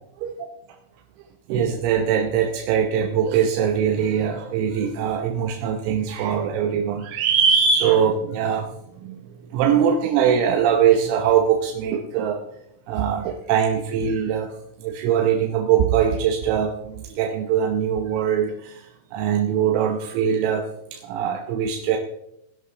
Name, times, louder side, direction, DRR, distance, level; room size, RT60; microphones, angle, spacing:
voice 1, 1.5-8.7 9.0-9.2 9.5-12.4 12.9-14.5 14.8-22.0, right 8 dB, 85° right, 2 dB, 3.7 m, -22 dB
19.0 x 11.0 x 3.4 m, 0.79 s
omnidirectional pair, 6.0 m